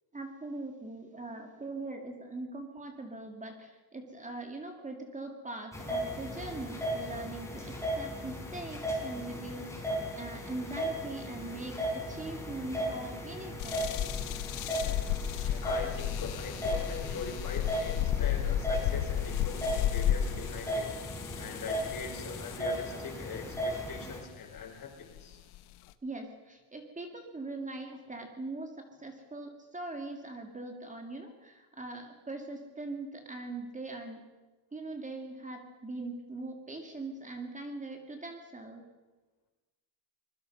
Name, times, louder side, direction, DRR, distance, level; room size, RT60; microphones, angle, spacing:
voice 1, 0.1-13.9 26.0-34.2 34.7-38.8, right 2 dB, 15° right, 3 dB, 2.4 m, -41 dB
sound 1, 5.7-24.2, equal, 5° left, 5.5 m, -36 dB
sound 2, 13.6-22.8 23.5-23.9 24.6-24.7 25.2-25.9, left 11 dB, 75° left, 1.2 m, -33 dB
voice 2, 15.5-20.9 21.4-25.4, left 5 dB, 40° left, 3 dB, 4.8 m, -42 dB
25.0 x 22.0 x 5.5 m, 1.2 s
cardioid pair, 150°, 49 cm